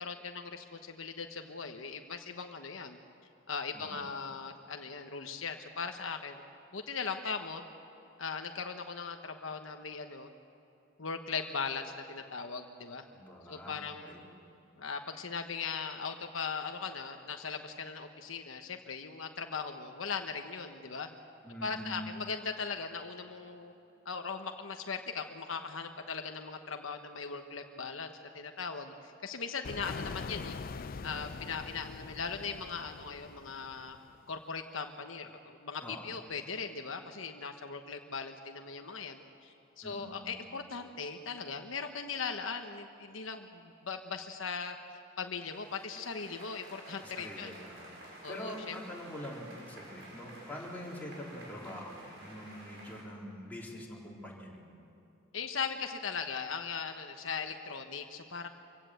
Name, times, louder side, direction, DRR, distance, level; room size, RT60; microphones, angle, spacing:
voice 1, 0.0-3.0 3.5-6.4 6.7-7.7 8.2-10.3 11.0-13.0 13.5-14.2 14.8-21.1 21.6-23.7 24.0-30.6 31.0-34.0 34.3-44.8 45.2-47.5 48.2-48.8 55.3-58.5, left 5 dB, 75° left, 5 dB, 1.2 m, -39 dB
voice 2, 13.1-14.2 21.4-22.1 35.8-36.1 39.8-40.3 47.0-47.9 48.3-54.6, equal, 10° left, -4 dB, 3.8 m, -44 dB
sound 1, 29.6-34.3, left 4 dB, 45° left, 0.5 m, -43 dB
sound 2, 45.3-53.0, right 1 dB, 65° right, 6.5 m, -51 dB
25.0 x 16.5 x 7.9 m, 2.8 s
head